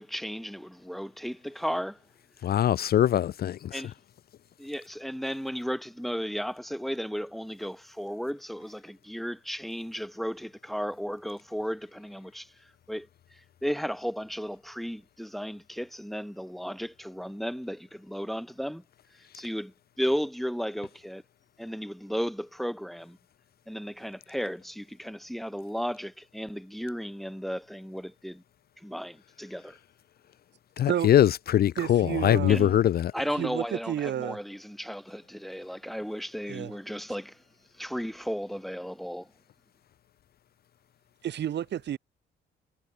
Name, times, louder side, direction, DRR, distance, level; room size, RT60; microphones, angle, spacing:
voice 1, 0.0-2.0 3.7-3.9 4.6-18.8 19.3-21.2 21.6-23.2 23.7-28.4 28.8-29.8 32.5-32.7 33.1-37.4 37.7-39.3, equal, ahead, 1.8 m, -34 dB
voice 2, 2.4-3.8 30.8-33.1, left 11 dB, 50° left, 0.5 m, -22 dB
voice 3, 31.8-32.8 33.4-34.4 36.5-36.7 41.2-42.0, right 10 dB, 60° right, 1.1 m, -31 dB
cardioid pair, 90°, 20 cm